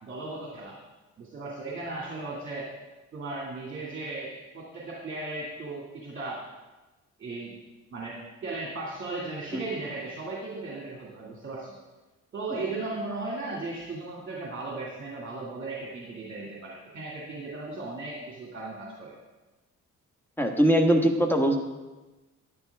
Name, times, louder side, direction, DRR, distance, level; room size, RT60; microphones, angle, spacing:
voice 1, 0.0-0.8 1.2-2.7 3.1-6.4 7.2-7.6 7.9-11.7 12.3-19.1, right 3 dB, 40° right, -4 dB, 2.3 m, -36 dB
voice 2, 20.4-21.6, equal, 5° left, 3 dB, 1.4 m, -21 dB
12.0 x 10.5 x 3.5 m, 1.1 s
cardioid pair, 105°, 29 cm